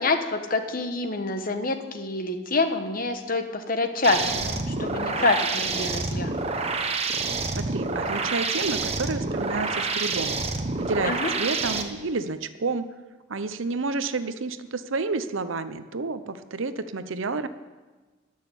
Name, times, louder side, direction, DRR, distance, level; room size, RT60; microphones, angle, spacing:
voice 1, 0.0-6.3 11.0-11.3, left 3 dB, 45° left, 7 dB, 1.1 m, -26 dB
sound 1, 4.0-11.8, right 3 dB, 30° right, 1.0 m, -28 dB
voice 2, 7.1-10.3 10.8-12.9 13.3-17.5, right 3 dB, 70° right, 12 dB, 0.7 m, -30 dB
14.0 x 6.6 x 9.8 m, 1.3 s
head